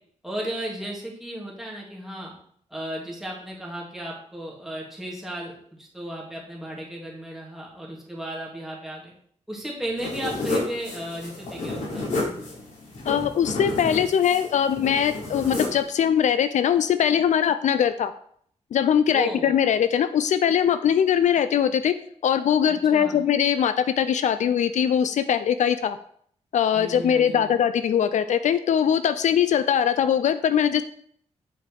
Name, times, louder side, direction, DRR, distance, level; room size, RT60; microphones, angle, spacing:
voice 1, 0.2-2.3 2.7-9.1 9.5-12.1 19.1-19.5 22.7-23.2 26.7-27.5, right 1 dB, ahead, -4 dB, 2.6 m, -35 dB
sound 1, 10.0-15.8, left 2 dB, 85° left, 3.3 m, -31 dB
voice 2, 13.1-18.1 18.7-21.9 22.2-26.0 26.5-30.8, left 8 dB, 70° left, 12 dB, 0.4 m, -21 dB
7.7 x 5.1 x 4.7 m, 0.63 s
wide cardioid pair, 110°, 13 cm